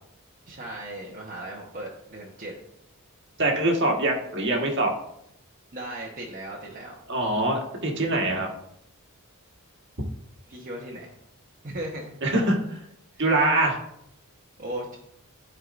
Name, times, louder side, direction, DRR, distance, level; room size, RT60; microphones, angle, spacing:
voice 1, 0.4-2.6 5.7-6.9 10.5-11.1 11.6-12.2 14.6-15.0, right 1 dB, 40° right, -4 dB, 1.1 m, -37 dB
voice 2, 3.4-4.9 7.1-8.5 12.2-12.8 13.2-13.8, right 2 dB, 55° right, 1 dB, 1.5 m, -23 dB
12.5 x 4.7 x 2.6 m, 0.76 s
head